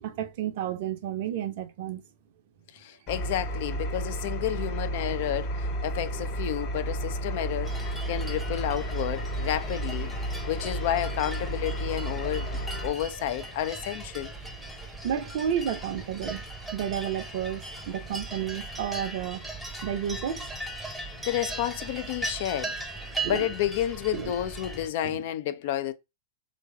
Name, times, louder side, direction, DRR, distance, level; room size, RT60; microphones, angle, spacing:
voice 1, 0.0-2.0 15.0-16.4 16.7-19.5 19.8-20.5 23.2-23.5 24.1-24.3 25.0-25.2, right 9 dB, 50° right, 0.6 m, -31 dB
voice 2, 2.7-10.1 10.5-12.5 12.8-14.3 21.3-22.8 23.2-25.9, left 11 dB, 50° left, 0.4 m, -31 dB
Engine, 3.1-12.9, right 1 dB, 30° left, 0.9 m, -32 dB
sound 1, 7.6-24.9, right 2 dB, ahead, 0.7 m, -38 dB
3.0 x 2.6 x 3.4 m
figure-of-eight pair, 100°, 0 cm